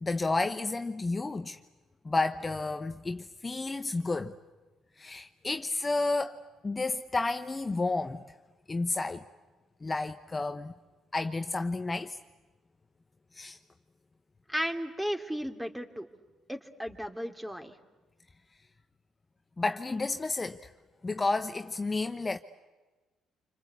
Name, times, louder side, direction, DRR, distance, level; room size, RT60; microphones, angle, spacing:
voice 1, 0.0-1.6 2.0-4.4 5.0-8.2 8.7-9.2 9.8-10.7 11.1-12.2 13.3-13.6 19.6-20.7 21.0-22.4, left 3 dB, 25° left, 1.0 m, -31 dB
voice 2, 14.5-16.1 16.5-17.8, equal, 5° right, 2.8 m, -34 dB
27.5 x 25.5 x 8.3 m
supercardioid pair, 60°, 0 cm